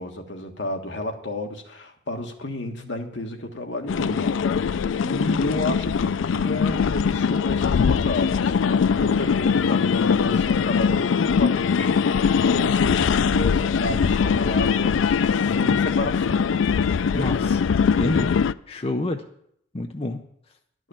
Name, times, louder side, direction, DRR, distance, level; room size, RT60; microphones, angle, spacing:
voice 1, 0.0-16.5 16.9-17.3, left 1 dB, 70° left, 3 dB, 1.5 m, -32 dB
sound 1, 3.9-18.5, left 6 dB, 90° left, 0.4 m, -21 dB
voice 2, 17.1-17.6 18.0-18.3 18.7-19.2 19.7-20.2, left 2 dB, 30° left, 4 dB, 0.6 m, -27 dB
11.5 x 6.3 x 8.8 m, 0.70 s
head